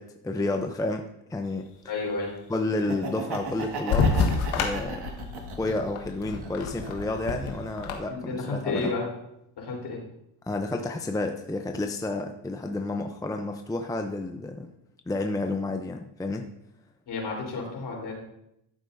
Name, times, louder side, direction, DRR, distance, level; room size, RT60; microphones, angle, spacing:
voice 1, 0.0-1.7 2.5-4.1 4.5-5.1 5.6-8.9 10.5-14.7 15.1-16.5, left 2 dB, 10° left, 5 dB, 0.6 m, -30 dB
voice 2, 1.9-2.3 8.1-9.1 9.6-10.0 17.1-18.2, left 3 dB, 55° left, -1 dB, 4.0 m, -31 dB
Laughter, 2.7-5.9 6.4-7.5, right 4 dB, 55° right, 1.9 m, -36 dB
sound 1, 3.9-7.9, left 4 dB, 85° left, 1.5 m, -28 dB
13.5 x 7.4 x 2.7 m, 0.80 s
cardioid pair, 90°, 47 cm